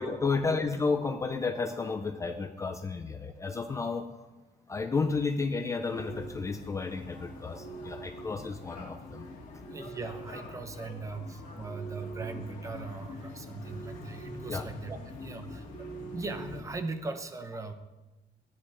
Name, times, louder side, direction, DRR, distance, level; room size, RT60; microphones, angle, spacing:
voice 1, 0.0-4.1 4.7-9.3 14.5-14.7, left 4 dB, 20° left, 7 dB, 0.4 m, -32 dB
sound 1, 5.9-16.6, equal, 50° left, 2.2 m, -43 dB
voice 2, 9.7-15.9 16.1-17.7, right 4 dB, 20° right, 9 dB, 0.7 m, -39 dB
14.5 x 9.8 x 3.4 m, 1.1 s
cardioid pair, 180°, 17 cm